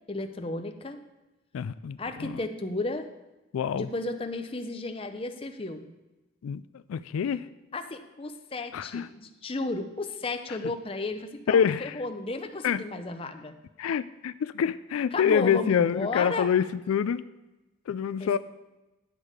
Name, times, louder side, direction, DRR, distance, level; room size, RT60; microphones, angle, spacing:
voice 1, 0.1-1.0 2.0-3.1 3.7-5.9 7.7-13.6 15.1-16.5 18.2-18.4, left 2 dB, 25° left, 7 dB, 0.6 m, -33 dB
voice 2, 1.5-2.4 3.5-3.9 6.4-7.5 8.7-9.1 10.5-10.6 11.5-11.9 12.6-12.8 13.8-17.2 17.9-18.4, left 8 dB, 90° left, 14 dB, 0.3 m, -26 dB
10.5 x 6.4 x 5.0 m, 1.1 s
head